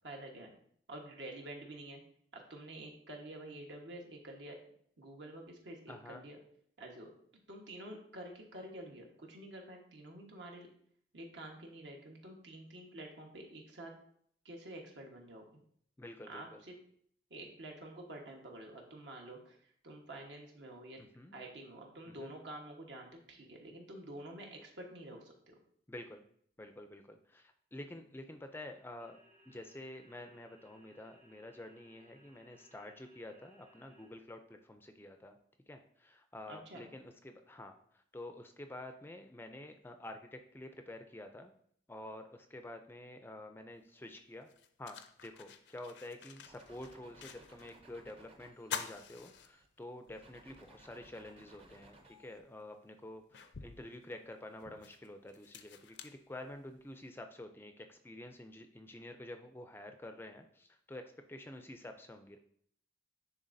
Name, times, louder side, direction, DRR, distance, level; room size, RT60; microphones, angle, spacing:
voice 1, 0.0-0.5 0.9-2.0 2.3-4.6 5.0-6.4 6.8-7.1 7.5-10.7 11.1-13.9 14.4-15.4 16.3-16.8 17.3-21.0 21.3-25.5 36.5-36.9, right 1 dB, 75° right, 0 dB, 1.3 m, -49 dB
voice 2, 5.9-6.2 16.0-16.6 21.0-21.4 22.0-22.3 25.9-26.2 26.6-29.2 29.5-34.4 34.7-35.4 35.7-37.7 38.1-41.5 41.9-44.5 44.8-61.0 61.3-62.4, left 1 dB, 10° left, 6 dB, 0.4 m, -49 dB
sound 1, 29.0-34.1, equal, 50° right, 1.9 m, -65 dB
sound 2, 43.8-43.9 44.4-47.8 48.1-48.2 48.6-50.1 50.5-50.6 52.1-52.2 52.7-56.9, left 7 dB, 70° left, 0.5 m, -47 dB
sound 3, 46.5-49.7 50.1-52.4, right 2 dB, 30° right, 0.6 m, -61 dB
10.0 x 3.7 x 2.6 m, 0.65 s
head